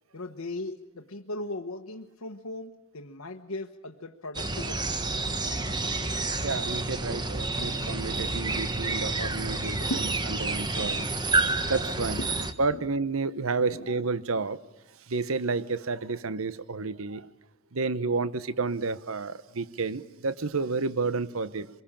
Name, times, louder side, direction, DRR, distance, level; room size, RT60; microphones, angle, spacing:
voice 1, 0.1-4.9 5.5-5.6 9.8-10.1 12.2-12.8 13.7-13.9 14.3-14.5, left 2 dB, 75° left, 3 dB, 1.3 m, -38 dB
sound 1, 4.3-12.5, right 2 dB, 20° right, 1.3 m, -29 dB
voice 2, 6.4-9.8 10.4-11.1 11.6-12.2 12.6-14.6 15.1-17.3 17.7-21.7, right 4 dB, 70° right, 16 dB, 0.9 m, -30 dB
25.0 x 22.5 x 8.8 m, 0.99 s
head